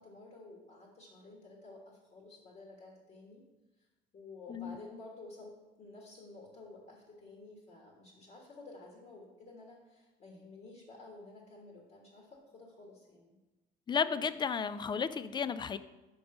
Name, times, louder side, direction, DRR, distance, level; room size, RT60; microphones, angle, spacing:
voice 1, 0.0-3.4 3.8-3.9 4.1-13.4, left 2 dB, 45° left, -1 dB, 1.5 m, -52 dB
voice 2, 13.9-15.8, left 6 dB, 25° left, 14 dB, 0.3 m, -33 dB
5.3 x 5.2 x 5.9 m, 1.1 s
cardioid pair, 110°, 17 cm